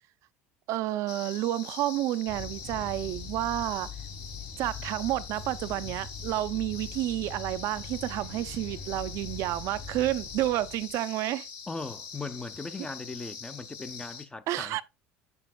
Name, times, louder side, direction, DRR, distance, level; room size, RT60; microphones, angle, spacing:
voice 1, 0.7-3.9 4.6-11.5 14.5-14.8, right 15 dB, 60° right, 0.4 m, -30 dB
sound 1, 1.1-14.3, left 6 dB, 70° left, 1.3 m, -44 dB
sound 2, 2.3-10.9, left 5 dB, 40° left, 1.2 m, -43 dB
Car, 2.7-10.9, left 2 dB, 90° left, 0.9 m, -55 dB
voice 2, 11.7-14.8, left 3 dB, 15° left, 0.5 m, -39 dB
7.4 x 7.0 x 2.2 m
supercardioid pair, 90°, 6 cm